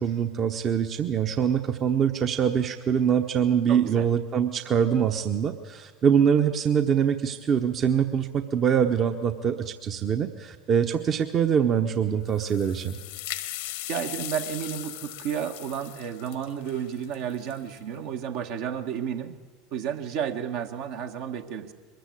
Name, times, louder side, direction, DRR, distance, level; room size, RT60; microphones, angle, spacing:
voice 1, 0.0-13.0, right 8 dB, 40° right, 6 dB, 1.0 m, -24 dB
voice 2, 3.7-4.1 13.9-19.3 19.7-21.7, right 8 dB, 65° right, 5 dB, 1.4 m, -32 dB
sound 1, 12.3-17.8, left 15 dB, 70° left, 1.1 m, -38 dB
22.0 x 14.5 x 8.5 m, 1.5 s
hypercardioid pair, 80°, 0 cm